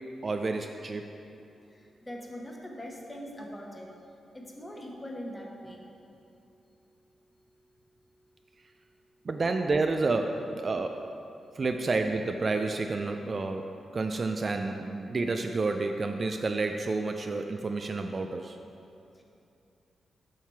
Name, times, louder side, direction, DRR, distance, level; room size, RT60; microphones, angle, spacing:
voice 1, 0.2-1.0 9.2-11.1 11.6-13.7 13.9-18.6, right 3 dB, 40° right, 5 dB, 0.3 m, -29 dB
voice 2, 2.0-3.9 4.3-5.9, equal, 15° left, 0 dB, 1.0 m, -41 dB
7.2 x 5.8 x 4.6 m, 2.7 s
wide cardioid pair, 120°, 0 cm